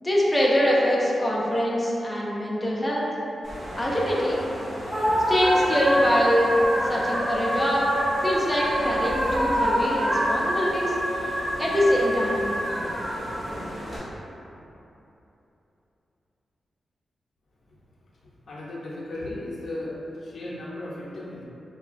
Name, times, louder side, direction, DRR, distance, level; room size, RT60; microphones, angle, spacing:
voice 1, 0.0-3.1 3.8-4.4 5.3-6.6 6.8-7.9 8.2-11.0 11.6-12.5, equal, 10° left, -5 dB, 0.5 m, -24 dB
sound 1, 3.4-14.0, equal, 40° right, 1.4 m, -27 dB
voice 2, 18.5-21.4, left 1 dB, 55° left, -7 dB, 0.6 m, -35 dB
4.8 x 2.3 x 2.4 m, 3.0 s
wide cardioid pair, 165°, 0 cm